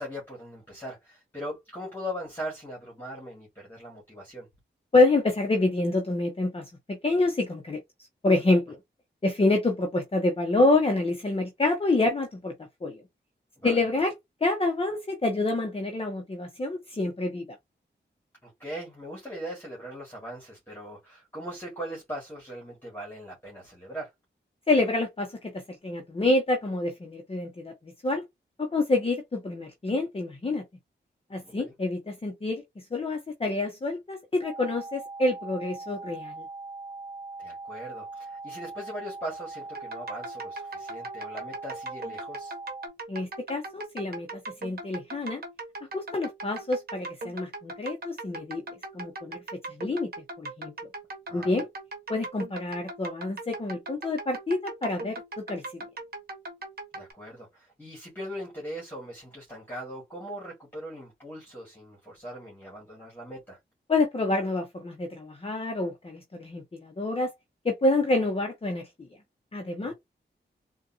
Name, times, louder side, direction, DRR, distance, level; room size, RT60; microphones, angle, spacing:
voice 1, 0.0-4.5 13.6-13.8 18.4-24.1 31.4-31.7 37.4-42.5 51.3-51.6 56.9-63.6 69.8-69.9, equal, 10° left, 1.8 m, -40 dB
voice 2, 4.9-7.8 8.2-8.8 9.2-12.5 12.8-13.0 13.6-14.1 14.4-17.5 24.7-28.2 28.6-30.6 31.3-32.6 32.9-36.5 43.1-45.4 45.9-48.6 48.9-49.4 49.7-50.1 50.4-50.7 51.3-51.7 52.1-55.8 63.9-67.3 67.6-69.1 69.5-69.9, left 2 dB, 30° left, 0.8 m, -27 dB
sound 1, 34.4-42.9, right 3 dB, 20° right, 0.8 m, -41 dB
sound 2, 39.7-57.1, right 2 dB, 55° right, 1.0 m, -40 dB
3.8 x 2.3 x 2.7 m
wide cardioid pair, 105°, 19 cm